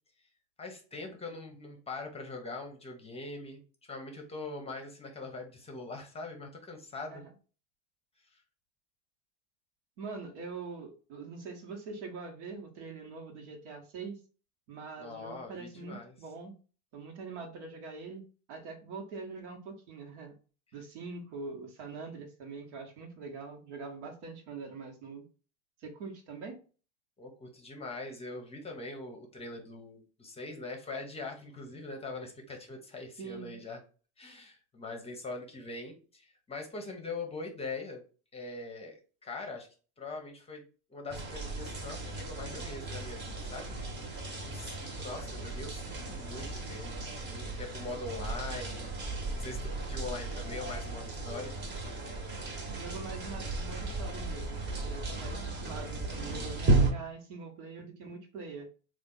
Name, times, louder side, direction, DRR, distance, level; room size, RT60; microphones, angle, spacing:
voice 1, 0.6-7.2 8.3-8.4 15.0-16.1 27.2-33.8 34.2-38.0 38.3-39.7 40.0-40.6 40.9-43.8 44.4-48.9 49.3-51.5, left 3 dB, 15° left, 3 dB, 0.8 m, -42 dB
voice 2, 10.0-14.2 14.7-16.5 16.9-18.2 18.5-20.3 20.7-25.2 25.8-26.6 33.2-33.6 52.7-58.7, right 4 dB, 70° right, 3 dB, 1.3 m, -43 dB
sound 1, 41.1-56.9, right 2 dB, 30° right, 1.2 m, -35 dB
3.4 x 2.5 x 3.8 m, 0.37 s
supercardioid pair, 120°, 35 cm